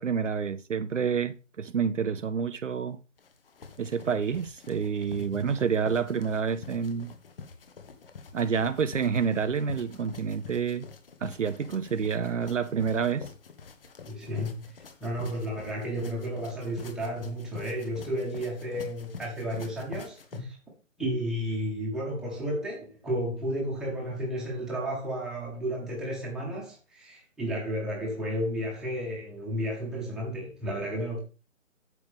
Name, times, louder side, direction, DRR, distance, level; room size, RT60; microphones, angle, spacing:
voice 1, 0.0-3.0 3.8-7.1 8.3-10.9 11.2-13.3, right 6 dB, 65° right, 0.7 m, -28 dB
sound 1, 3.2-20.4, left 5 dB, 45° left, 1.3 m, -46 dB
voice 2, 14.1-14.7 15.0-20.6 21.0-31.2, equal, ahead, 1.4 m, -32 dB
9.2 x 7.1 x 3.4 m
figure-of-eight pair, 145°, 40 cm